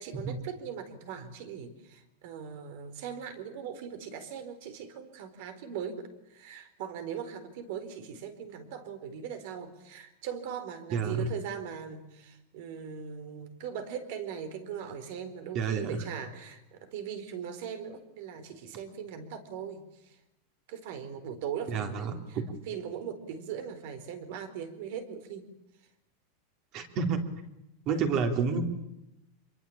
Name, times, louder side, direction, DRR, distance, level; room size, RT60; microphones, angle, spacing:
voice 1, 0.0-20.2 20.7-25.5 28.5-28.6, right 7 dB, 55° right, 11 dB, 4.4 m, -40 dB
voice 2, 10.9-11.3 15.5-16.0 21.7-22.4 26.7-27.2 27.9-28.6, right 5 dB, 35° right, 6 dB, 3.8 m, -29 dB
27.0 x 22.5 x 8.9 m, 0.86 s
supercardioid pair, 165°, 0 cm